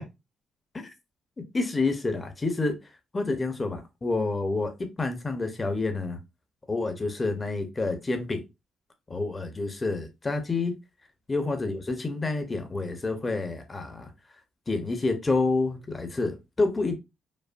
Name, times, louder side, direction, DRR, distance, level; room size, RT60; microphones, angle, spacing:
voice 1, 1.5-2.8 3.1-6.2 6.7-8.4 9.1-10.8 11.3-14.1 14.7-17.0, left 3 dB, 25° left, 0.9 m, -28 dB
5.2 x 2.1 x 2.5 m
cardioid pair, 90°, 0 cm